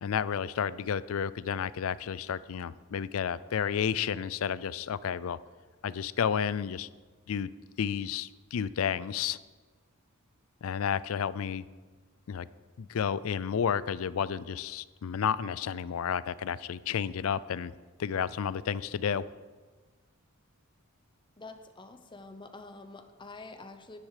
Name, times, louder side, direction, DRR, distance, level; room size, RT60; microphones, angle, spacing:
voice 1, 0.0-5.4 5.8-6.9 7.3-7.5 7.8-9.4 10.6-11.6 12.3-12.5 12.8-17.7 18.0-19.2, left 7 dB, 70° left, 18 dB, 0.4 m, -31 dB
voice 2, 21.4-24.0, left 3 dB, 20° left, 8 dB, 0.8 m, -47 dB
10.5 x 9.9 x 4.9 m, 1.4 s
head